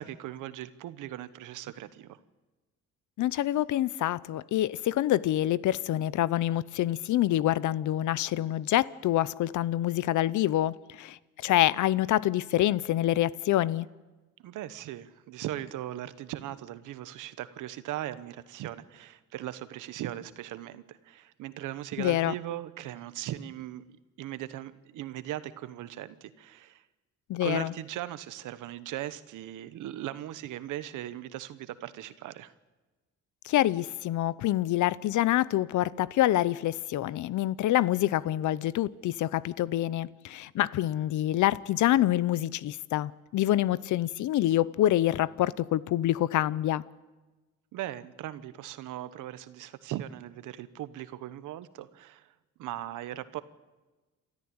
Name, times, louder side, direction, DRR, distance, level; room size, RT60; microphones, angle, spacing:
voice 1, 0.0-2.2 14.4-23.9 24.2-26.8 27.4-32.5 47.7-52.3 52.6-53.4, right 13 dB, 90° right, 1.2 m, -39 dB
voice 2, 3.2-13.9 22.0-22.3 27.3-27.7 33.4-46.8, left 13 dB, 75° left, 0.7 m, -26 dB
29.0 x 13.5 x 8.8 m
cardioid pair, 90°, 30 cm